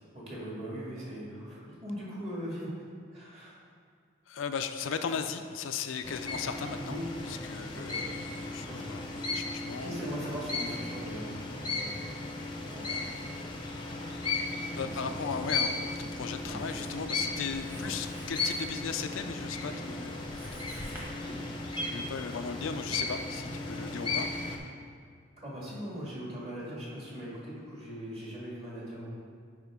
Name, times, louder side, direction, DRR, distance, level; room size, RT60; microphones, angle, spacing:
voice 1, 0.0-2.7 3.1-3.5 6.8-7.1 7.8-8.0 8.7-8.9 9.8-12.0 12.7-13.2 14.8-15.2 16.5-16.6 17.7-17.9 19.7-19.9 21.2-21.4 25.4-29.1, equal, 30° right, -6 dB, 1.9 m, -40 dB
voice 2, 4.3-7.0 7.2-10.0 14.7-20.2 20.5-20.7 21.9-24.3, left 6 dB, 85° left, 8 dB, 0.4 m, -37 dB
sound 1, 6.0-24.6, left 3 dB, 25° left, 0.7 m, -36 dB
Writing, 14.8-21.0, equal, 10° right, 1.2 m, -51 dB
9.4 x 5.0 x 3.6 m, 2.1 s
head